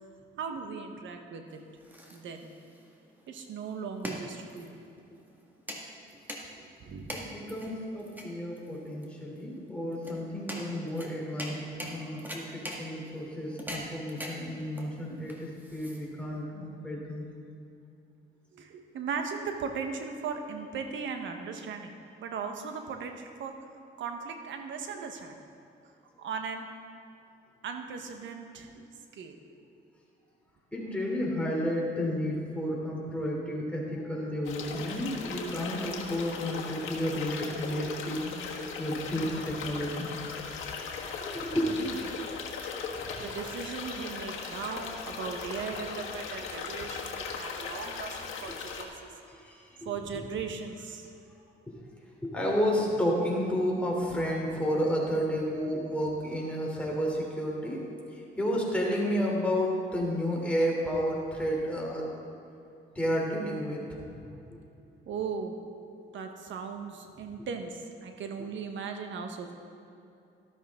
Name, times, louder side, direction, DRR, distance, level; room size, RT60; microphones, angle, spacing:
voice 1, 0.4-1.6 2.1-2.5 3.3-4.8 6.5-7.6 13.7-14.1 18.5-23.5 24.0-25.4 26.2-26.7 27.6-29.3 41.8-42.0 43.2-49.1 49.8-51.1 65.1-65.6 66.1-69.5, right 5 dB, 70° right, 5 dB, 1.3 m, -38 dB
sound 1, 1.5-16.4, equal, 10° right, 1.8 m, -43 dB
voice 2, 7.1-17.2 30.7-38.3 38.8-40.1 41.3-41.7 43.0-43.2 49.3-49.9 52.2-57.8 58.1-62.1 62.9-64.1, equal, 5° left, -3 dB, 3.2 m, -31 dB
sound 2, 34.4-48.8, left 5 dB, 85° left, 1.5 m, -38 dB
13.0 x 12.5 x 3.7 m, 2.7 s
cardioid pair, 90°, 20 cm